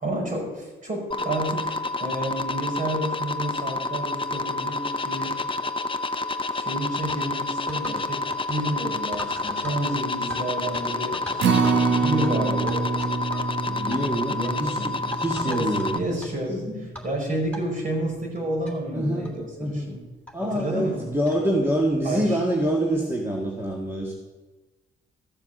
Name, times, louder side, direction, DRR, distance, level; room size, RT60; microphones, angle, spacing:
voice 1, 0.0-5.4 6.5-11.2 11.5-12.8 13.6-14.9 15.4-16.6 17.0-20.0 20.4-21.1 22.0-22.4, right 1 dB, 40° right, 0 dB, 5.0 m, -30 dB
sound 1, 1.1-16.0, left 2 dB, 25° left, 0.7 m, -29 dB
sound 2, 7.1-7.2 7.7-8.1 8.3-8.5 9.1-10.4 10.7-10.8 11.1-11.8 12.2-12.3 12.7-13.5 13.8-14.0 14.4-14.6 15.1-15.9 16.2-16.3 17.0-17.1 17.5-17.6 18.4-18.5 18.7-18.8 19.2-19.4 20.3-20.4 21.3-21.5, equal, 5° left, 3.2 m, -39 dB
Acoustic guitar, 11.4-17.7 18.1-18.2 18.6-18.7, right 5 dB, 65° right, 1.2 m, -27 dB
voice 2, 13.9-14.8 15.0-16.0 16.5-16.8 18.9-19.3 19.6-19.9 20.3-24.1, right 1 dB, 10° right, -2 dB, 1.9 m, -26 dB
14.0 x 7.2 x 6.6 m, 1.2 s
cardioid pair, 90°, 20 cm